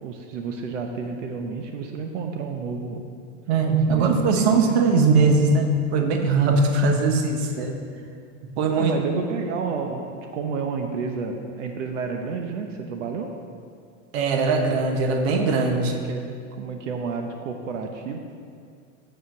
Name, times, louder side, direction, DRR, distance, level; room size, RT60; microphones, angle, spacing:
voice 1, 0.0-3.0 3.9-4.8 8.8-13.3 15.7-18.2, right 5 dB, 85° right, 3 dB, 0.9 m, -31 dB
voice 2, 3.5-7.8 8.6-9.0 14.1-15.9, right 3 dB, 60° right, 4 dB, 1.1 m, -20 dB
7.4 x 5.6 x 7.1 m, 2.3 s
supercardioid pair, 175°, 36 cm